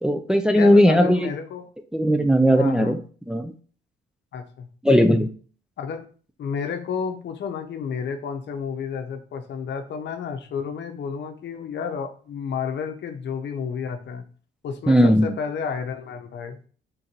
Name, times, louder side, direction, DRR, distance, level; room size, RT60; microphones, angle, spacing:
voice 1, 0.0-1.3 1.9-3.0 3.3-3.5 4.8-5.3 14.9-15.3, equal, 5° right, 6 dB, 0.4 m, -17 dB
voice 2, 0.5-1.7 2.5-3.0 4.3-4.7 5.8-6.1 6.4-14.2 14.6-16.6, left 6 dB, 65° left, 7 dB, 0.7 m, -31 dB
3.8 x 2.6 x 4.4 m, 0.41 s
cardioid pair, 90°, 20 cm